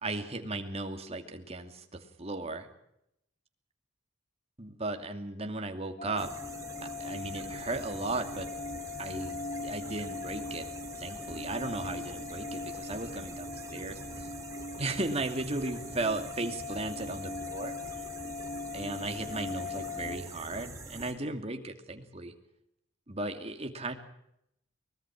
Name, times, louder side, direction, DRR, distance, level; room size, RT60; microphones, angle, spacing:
voice 1, 0.0-2.7 4.6-6.3 6.8-8.5 9.0-10.7 10.9-14.3 14.8-18.1 18.7-22.3 23.1-23.9, right 2 dB, 35° right, 5 dB, 2.5 m, -36 dB
sound 1, 6.0-20.2, left 4 dB, 50° left, 3.9 m, -40 dB
sound 2, 6.2-21.1, right 2 dB, 20° right, 3.6 m, -45 dB
23.5 x 21.0 x 6.1 m, 0.79 s
head